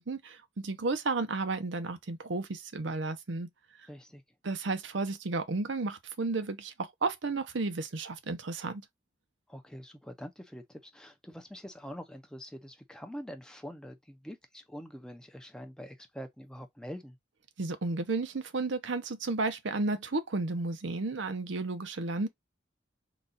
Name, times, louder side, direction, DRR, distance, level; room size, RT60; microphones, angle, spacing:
voice 1, 0.0-3.5 4.4-8.8 17.6-22.3, right 3 dB, 80° right, 0.7 m, -33 dB
voice 2, 3.9-4.2 9.5-17.2, equal, 5° left, 0.5 m, -45 dB
3.9 x 2.4 x 3.8 m
head